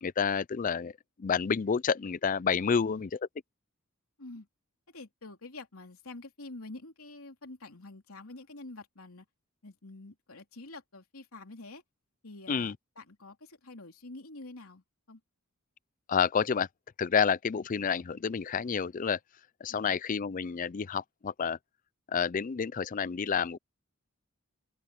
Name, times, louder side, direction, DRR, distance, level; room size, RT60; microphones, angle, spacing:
voice 1, 0.0-0.9 1.2-3.1 12.5-12.8 16.1-16.7 17.0-19.2 19.6-21.6 22.1-23.6, left 6 dB, 40° left, 0.4 m, -29 dB
voice 2, 2.7-3.1 4.2-4.5 4.9-9.3 9.6-11.8 12.2-15.2 19.7-19.9, left 2 dB, 85° left, 3.2 m, -47 dB
open air
head